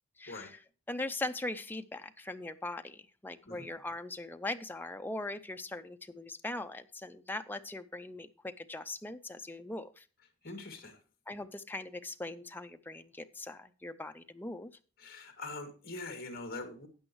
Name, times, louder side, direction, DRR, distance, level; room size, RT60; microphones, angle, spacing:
voice 1, 0.2-0.6 0.9-10.1 11.3-14.7, left 2 dB, 10° left, 8 dB, 0.5 m, -40 dB
voice 2, 10.4-11.0 15.0-16.9, left 2 dB, 45° left, 6 dB, 2.4 m, -43 dB
12.5 x 8.8 x 3.1 m, 0.36 s
head